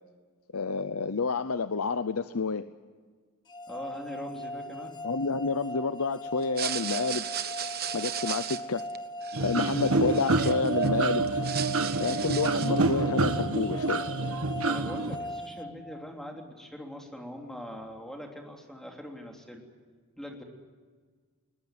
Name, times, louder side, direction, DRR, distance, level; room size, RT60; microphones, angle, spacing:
voice 1, 0.5-2.6 5.0-7.3 7.9-8.8 9.4-11.4 12.0-14.0, left 4 dB, 70° left, 12 dB, 0.7 m, -29 dB
sound 1, 3.5-16.4, left 1 dB, 20° left, 1.0 m, -39 dB
voice 2, 3.7-5.0 14.6-19.6 20.2-20.4, equal, ahead, 1 dB, 3.4 m, -42 dB
sound 2, 6.4-10.9 11.2-12.9, right 10 dB, 45° right, 1.2 m, -36 dB
sound 3, 9.3-15.2, right 3 dB, 65° right, 1.5 m, -27 dB
21.5 x 21.0 x 9.3 m, 1.5 s
head